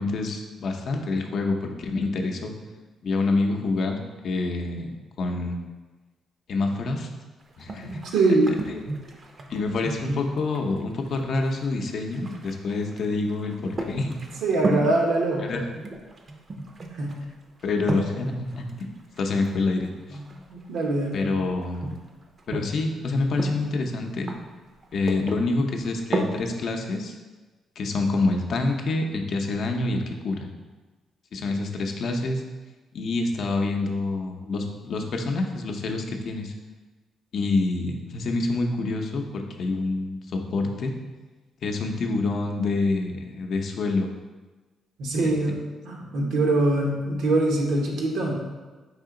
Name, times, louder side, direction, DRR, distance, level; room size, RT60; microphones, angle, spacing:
voice 1, 0.0-2.5 3.0-4.9 5.2-5.6 6.5-7.1 7.6-8.0 9.5-14.2 15.5-15.6 17.6-18.9 19.2-20.2 21.1-21.9 22.5-24.3 24.9-27.1 27.8-30.4 31.3-32.4 32.9-36.5 37.3-40.9 41.6-44.1, left 3 dB, 60° left, 3 dB, 0.6 m, -27 dB
sound 1, 7.4-22.9 23.2-26.5, right 2 dB, 40° right, 0.5 m, -35 dB
voice 2, 7.8-8.5 10.0-10.2 14.4-15.5 16.9-17.2 20.1-20.2 20.5-21.2 45.0-48.3, right 2 dB, 80° right, 0 dB, 0.9 m, -23 dB
4.9 x 2.8 x 3.7 m, 1.3 s
cardioid pair, 90°, 0 cm